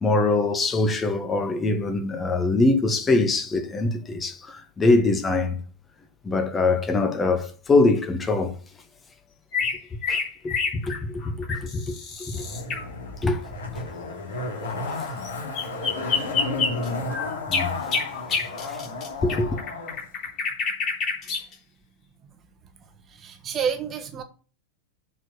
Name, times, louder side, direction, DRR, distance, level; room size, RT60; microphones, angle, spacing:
voice 1, 0.0-5.6 6.2-8.6 10.1-12.5 13.2-13.4 13.7-13.8 14.9-15.1 16.2-16.3 17.5-18.0 18.3-18.8 19.2-19.6, left 3 dB, 15° left, 1.3 m, -24 dB
sound 1, 9.5-12.8 15.2-15.3 15.6-21.5, left 5 dB, 35° left, 3.7 m, -27 dB
Zipper (clothing), 12.3-20.0 20.3-20.4, left 3 dB, 65° left, 2.8 m, -32 dB
voice 2, 23.2-24.2, right 7 dB, 25° right, 1.3 m, -29 dB
7.4 x 4.7 x 7.0 m
figure-of-eight pair, 90°, 0 cm